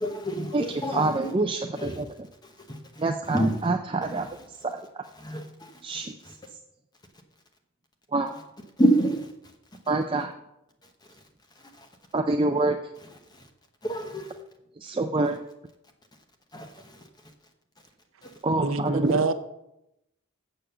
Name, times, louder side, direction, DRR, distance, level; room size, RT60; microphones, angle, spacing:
voice 1, 0.0-1.1 1.8-2.0 2.7-2.8 3.3-3.5 5.2-5.4 8.8-9.3 13.8-14.3 16.5-16.7 18.2-18.3, right 1 dB, 20° left, 1.0 m, -25 dB
voice 2, 0.5-2.1 3.0-4.7 5.8-6.1 8.1-8.3 9.9-10.3 12.1-12.8 14.8-15.4 18.4-19.2, right 2 dB, 25° right, 0.4 m, -26 dB
voice 3, 18.6-19.3, right 3 dB, 65° right, 0.6 m, -25 dB
7.4 x 6.8 x 6.7 m
head